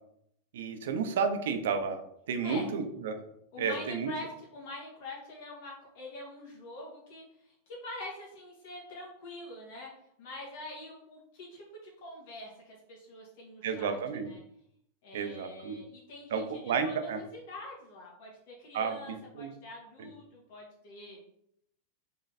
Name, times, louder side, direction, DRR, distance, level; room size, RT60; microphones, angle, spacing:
voice 1, 0.5-2.0 2.3-3.2 3.6-4.1 13.6-14.3 15.1-15.8 16.3-17.2 18.7-19.5 20.0-20.1, right 6 dB, 75° right, 7 dB, 0.6 m, -32 dB
voice 2, 3.5-9.9 10.2-14.0 14.2-14.4 15.0-21.2, left 2 dB, 55° left, -2 dB, 1.8 m, -45 dB
3.8 x 3.2 x 4.1 m, 0.73 s
supercardioid pair, 165°, 0 cm